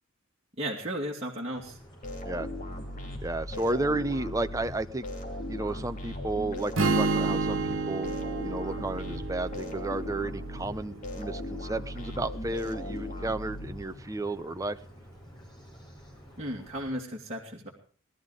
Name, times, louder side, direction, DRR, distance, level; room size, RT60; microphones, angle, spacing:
voice 1, 0.6-1.8 16.4-17.7, right 1 dB, 30° right, -3 dB, 2.5 m, -34 dB
sound 1, 1.5-16.9, equal, 20° left, 5.6 m, -51 dB
sound 2, 2.0-14.3, left 1 dB, 40° left, 2.9 m, -38 dB
voice 2, 3.2-5.1 5.5-8.1 8.4-14.8, right 2 dB, 15° right, 9 dB, 0.7 m, -32 dB
Strum, 6.7-10.9, right 3 dB, 75° right, 1.4 m, -30 dB
19.0 x 12.5 x 5.1 m, 0.43 s
head